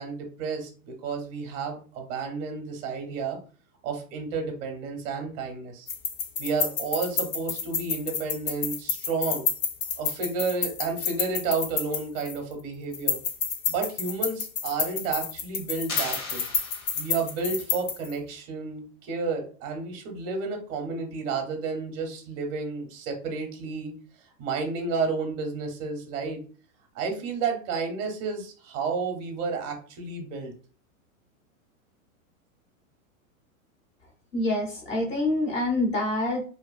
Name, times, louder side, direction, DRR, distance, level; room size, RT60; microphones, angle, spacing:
voice 1, 0.0-3.4 3.8-5.9 6.4-9.5 10.0-13.2 13.7-16.5 16.9-23.9 24.4-26.4 26.9-30.5, right 4 dB, 30° right, 4 dB, 0.6 m, -31 dB
sound 1, 5.9-12.5 12.9-18.1, left 6 dB, 60° left, 0.6 m, -29 dB
sound 2, 15.9-17.4, left 3 dB, 80° left, 1.1 m, -37 dB
voice 2, 34.3-36.4, left 2 dB, 15° left, 0 dB, 0.4 m, -26 dB
2.5 x 2.2 x 2.3 m, 0.39 s
hypercardioid pair, 140°, 43 cm